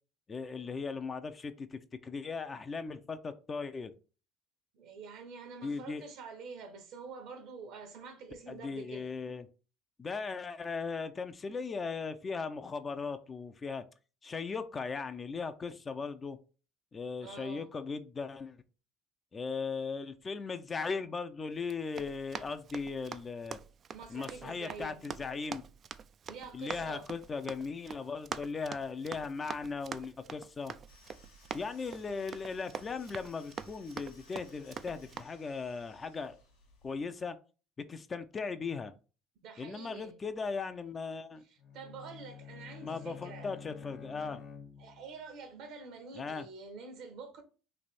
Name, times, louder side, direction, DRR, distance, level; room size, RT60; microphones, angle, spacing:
voice 1, 0.3-3.9 5.6-6.0 8.5-9.5 10.0-13.8 14.2-16.4 16.9-18.6 19.3-23.6 24.1-25.6 26.5-30.7 31.5-36.4 36.8-37.4 37.9-38.9 39.6-41.4 42.8-44.4 46.1-46.5, left 4 dB, 30° left, 0.5 m, -38 dB
voice 2, 4.7-9.1 17.2-17.7 23.9-25.0 26.3-27.1 39.4-40.2 41.7-43.5 44.8-47.4, right 4 dB, 65° right, 1.0 m, -47 dB
Run, 21.6-35.2, right 7 dB, 45° right, 0.3 m, -45 dB
sound 1, 30.9-37.0, left 2 dB, 85° left, 1.2 m, -61 dB
Bowed string instrument, 41.6-45.2, left 7 dB, 55° left, 1.3 m, -49 dB
3.3 x 2.6 x 4.1 m
hypercardioid pair, 70°, 0 cm